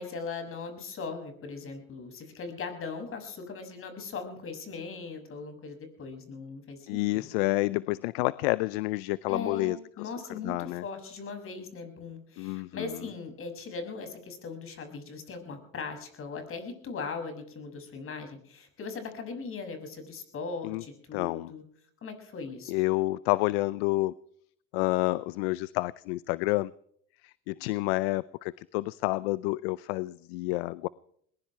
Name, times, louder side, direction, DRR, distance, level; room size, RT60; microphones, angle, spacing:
voice 1, 0.0-7.3 9.3-21.6 22.0-22.7, left 4 dB, 45° left, 6 dB, 6.6 m, -39 dB
voice 2, 6.9-10.1 10.4-10.8 12.4-13.1 20.6-20.8 21.1-21.5 22.7-24.1 24.7-26.7 27.2-30.9, left 20 dB, 85° left, 20 dB, 0.6 m, -29 dB
21.5 x 20.0 x 3.3 m, 0.64 s
supercardioid pair, 85°, 30 cm